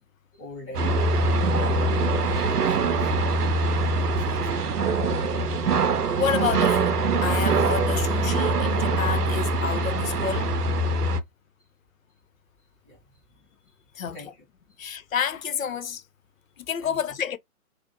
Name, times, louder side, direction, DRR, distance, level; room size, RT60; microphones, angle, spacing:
voice 1, 0.3-1.6 2.4-3.1 4.1-4.5 12.8-13.0 13.9-14.4 16.8-17.0, left 1 dB, 20° left, 0.9 m, -43 dB
sound 1, 0.7-11.2, right 3 dB, 85° right, 0.6 m, -23 dB
voice 2, 6.2-10.6 14.0-14.2 14.8-16.0 16.6-17.4, left 7 dB, 65° left, 0.5 m, -29 dB
2.6 x 2.4 x 2.7 m
figure-of-eight pair, 135°, 45 cm